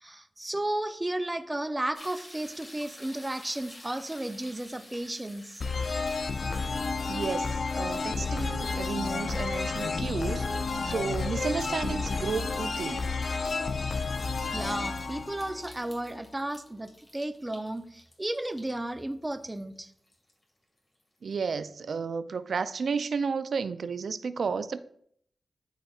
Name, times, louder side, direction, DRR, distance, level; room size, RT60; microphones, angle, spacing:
voice 1, 0.0-5.6 14.5-19.9, right 1 dB, 20° right, 0.6 m, -34 dB
sound 1, 1.9-21.0 21.5-21.6, left 1 dB, 25° left, 1.8 m, -53 dB
sound 2, 5.6-16.2, left 4 dB, 65° left, 0.5 m, -31 dB
voice 2, 7.1-10.5 10.8-13.1 21.2-24.8, right 5 dB, 75° right, 0.3 m, -32 dB
12.0 x 4.1 x 2.4 m
cardioid pair, 70°, 0 cm